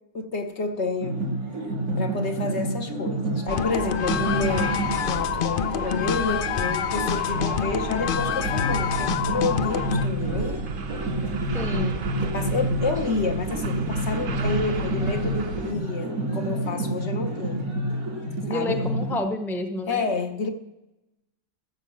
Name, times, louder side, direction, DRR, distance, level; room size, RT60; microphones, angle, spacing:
voice 1, 0.1-1.2 2.0-10.6 12.2-17.7 18.5-18.8 19.9-20.5, left 4 dB, 55° left, 1.2 m, -29 dB
sound 1, 1.0-19.2, right 1 dB, 85° right, 3.2 m, -29 dB
sound 2, 3.5-10.0, left 9 dB, 75° left, 0.4 m, -27 dB
sound 3, 3.5-15.7, right 5 dB, 45° right, 0.8 m, -35 dB
voice 2, 11.5-12.0 18.4-20.1, left 1 dB, ahead, 0.8 m, -29 dB
14.5 x 6.3 x 7.4 m
omnidirectional pair, 1.5 m